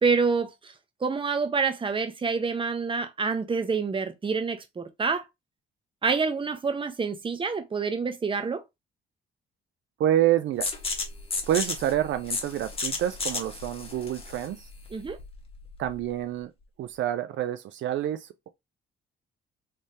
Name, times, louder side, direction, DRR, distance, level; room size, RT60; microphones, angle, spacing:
voice 1, 0.0-0.7 1.0-5.2 6.0-8.6 14.9-15.2, right 5 dB, 25° right, 0.8 m, -27 dB
voice 2, 10.0-10.7 11.5-14.6 15.8-16.5 16.8-18.5, right 12 dB, 70° right, 0.5 m, -27 dB
sound 1, 10.6-16.1, left 3 dB, 30° left, 1.2 m, -33 dB
3.4 x 3.2 x 2.8 m
cardioid pair, 90°, 20 cm